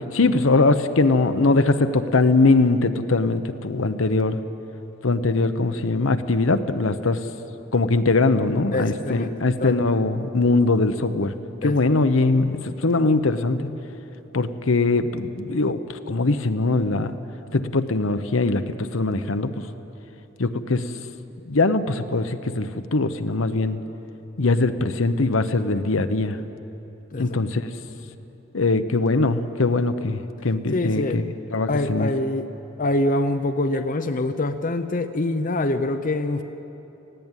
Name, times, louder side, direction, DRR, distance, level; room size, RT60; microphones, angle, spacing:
voice 1, 0.0-4.4 5.0-7.2 7.7-11.3 11.6-13.7 14.3-17.2 17.5-19.6 20.4-20.9 21.5-23.8 24.4-26.4 27.2-27.7 28.5-31.2 31.5-32.1, left 3 dB, 75° left, 10 dB, 0.9 m, -21 dB
voice 2, 8.7-9.3 9.6-9.8 11.6-11.9 27.1-27.4 30.7-31.2 31.7-32.5 32.8-36.4, left 2 dB, 40° left, 9 dB, 0.7 m, -25 dB
19.0 x 16.0 x 9.1 m, 3.0 s
head